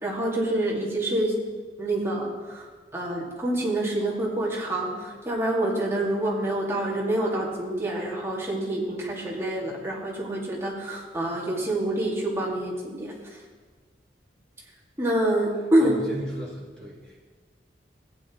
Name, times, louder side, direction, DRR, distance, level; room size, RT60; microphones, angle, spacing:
voice 1, 0.0-1.3 1.8-2.7 2.9-13.1 15.0-15.9, right 1 dB, 15° right, -5 dB, 2.1 m, -27 dB
voice 2, 15.8-17.3, equal, 5° left, -9 dB, 3.1 m, -36 dB
15.0 x 9.0 x 3.1 m, 1.4 s
head